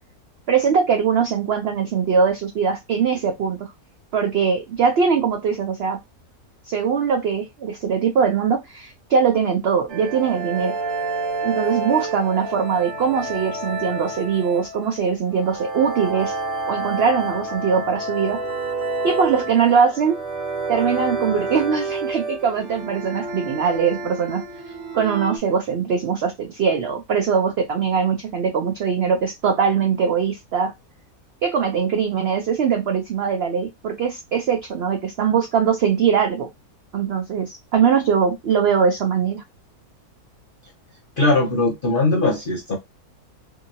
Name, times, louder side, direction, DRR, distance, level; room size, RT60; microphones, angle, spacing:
voice 1, 0.5-3.7 4.1-6.0 6.7-10.7 11.4-16.3 16.7-18.4 19.0-20.2 20.7-24.4 24.9-30.7 31.4-36.5 36.9-39.4, right 6 dB, 75° right, 0.5 m, -21 dB
sound 1, 9.9-25.4, right 3 dB, 60° right, 1.0 m, -29 dB
voice 2, 41.2-42.8, left 2 dB, 60° left, 0.5 m, -20 dB
2.7 x 2.7 x 2.7 m
omnidirectional pair, 1.6 m